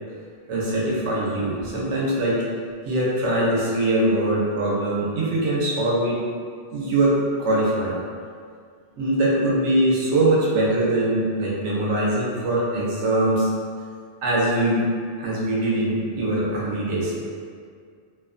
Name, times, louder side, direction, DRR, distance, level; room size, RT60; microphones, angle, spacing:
voice 1, 0.5-2.4 2.9-6.2 6.7-8.0 9.0-13.5 14.2-14.8 15.2-17.1, right 1 dB, 85° right, -5 dB, 0.9 m, -22 dB
2.5 x 2.1 x 2.4 m, 2.1 s
omnidirectional pair, 1.2 m